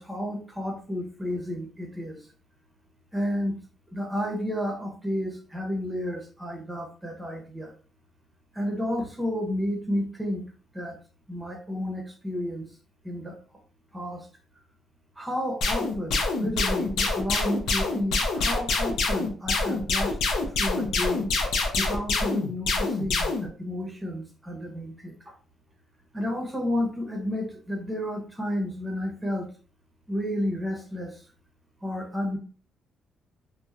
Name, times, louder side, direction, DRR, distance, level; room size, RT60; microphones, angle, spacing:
voice 1, 0.0-2.2 3.1-3.6 3.9-7.7 8.5-10.5 10.7-11.0 11.3-12.7 13.0-13.4 13.9-14.3 15.2-20.2 20.6-21.2 21.8-25.3 26.1-29.5 30.1-31.2 31.8-32.4, left 1 dB, 10° right, 1 dB, 0.8 m, -31 dB
sound 1, 15.6-23.5, left 3 dB, 80° left, 0.5 m, -26 dB
2.9 x 2.1 x 2.4 m, 0.40 s
cardioid pair, 90°, 0 cm